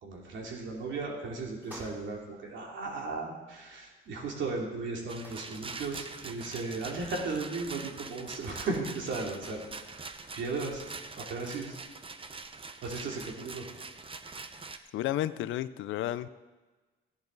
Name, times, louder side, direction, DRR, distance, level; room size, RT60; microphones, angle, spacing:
voice 1, 0.0-9.6 9.9-10.1 10.3-10.8 11.2-11.7 12.8-13.7, right 3 dB, 70° right, 0 dB, 2.9 m, -36 dB
sound 1, 1.6-2.2 4.0-4.1 4.3-4.4 5.1-5.6, equal, 10° right, 4.4 m, -50 dB
Rattle, 5.1-14.8, right 4 dB, 25° right, 0.8 m, -44 dB
voice 2, 14.9-16.3, left 13 dB, 80° left, 15 dB, 0.5 m, -32 dB
14.5 x 10.5 x 4.0 m, 1.3 s
cardioid pair, 90°, 20 cm